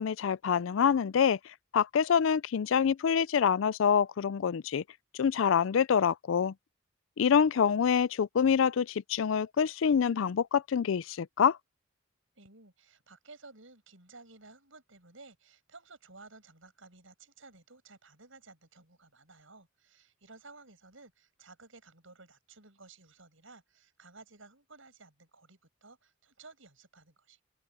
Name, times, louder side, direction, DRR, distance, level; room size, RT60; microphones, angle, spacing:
voice 1, 0.0-1.4 1.7-4.8 5.1-6.5 7.2-11.6, left 7 dB, 70° left, 0.4 m, -26 dB
voice 2, 12.4-27.4, right 3 dB, 70° right, 6.9 m, -55 dB
open air
head